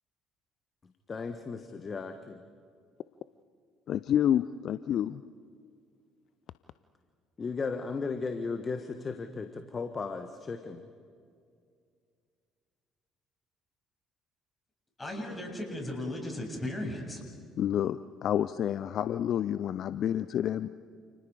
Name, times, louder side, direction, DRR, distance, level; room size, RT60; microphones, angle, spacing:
voice 1, 1.1-2.4 7.4-10.8, left 4 dB, 35° left, 8 dB, 1.5 m, -35 dB
voice 2, 3.9-5.2 17.6-20.7, left 10 dB, 55° left, 15 dB, 0.5 m, -29 dB
voice 3, 15.0-17.2, left 1 dB, 20° left, 1 dB, 7.9 m, -36 dB
30.0 x 29.0 x 5.2 m, 2.2 s
figure-of-eight pair, 50°, 0 cm